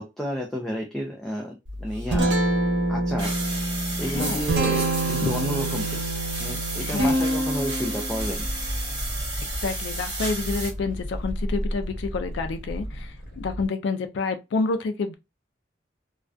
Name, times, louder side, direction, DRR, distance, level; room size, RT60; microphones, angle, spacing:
voice 1, 0.0-2.3 2.9-3.3 4.0-6.1 6.4-8.5, equal, ahead, 0.4 m, -31 dB
Guitar, 1.7-11.4, right 1 dB, 85° right, 0.7 m, -27 dB
sound 1, 3.2-10.7, right 3 dB, 30° right, 0.9 m, -33 dB
voice 2, 4.0-4.5 5.2-5.3 6.8-7.3 9.6-15.1, left 4 dB, 80° left, 0.4 m, -29 dB
sound 2, 8.1-13.7, equal, 60° left, 1.0 m, -34 dB
2.3 x 2.2 x 2.4 m
head